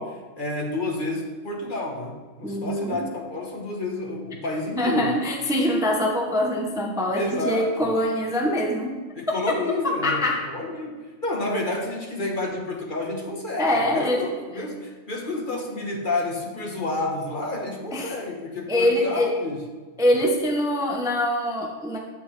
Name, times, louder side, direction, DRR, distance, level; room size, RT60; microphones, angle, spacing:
voice 1, 0.0-5.1 7.1-7.9 9.2-19.6, left 2 dB, 40° left, 1 dB, 1.2 m, -30 dB
voice 2, 2.4-3.1 4.8-9.0 10.0-10.4 13.6-14.3 17.9-18.1 18.7-19.4 20.0-22.0, left 1 dB, 5° right, 1 dB, 0.7 m, -24 dB
9.4 x 8.2 x 3.3 m, 1.4 s
omnidirectional pair, 1.4 m